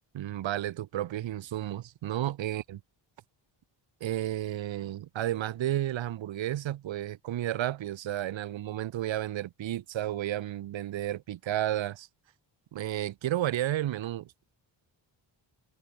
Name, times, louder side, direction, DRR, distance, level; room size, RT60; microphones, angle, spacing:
voice 1, 0.1-2.8 4.0-12.1 12.7-14.5, right 13 dB, 75° right, 0.9 m, -32 dB
open air
cardioid pair, 90°, 46 cm